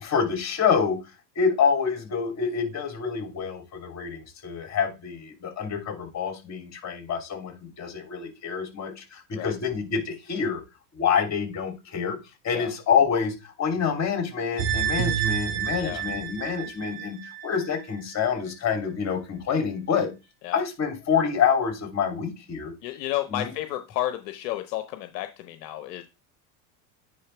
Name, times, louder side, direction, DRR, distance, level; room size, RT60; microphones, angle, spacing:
voice 1, 0.0-1.0 1.3-10.6 10.9-12.2 12.4-17.2 17.4-20.1 20.5-22.7 23.3-23.5, left 6 dB, 35° left, 3 dB, 3.1 m, -27 dB
sound 1, 14.6-17.8 18.1-18.2, right 9 dB, 55° right, 1.5 m, -29 dB
voice 2, 22.8-26.0, left 14 dB, 75° left, 8 dB, 0.9 m, -32 dB
9.7 x 3.7 x 3.3 m, 0.26 s
supercardioid pair, 100°, 50 cm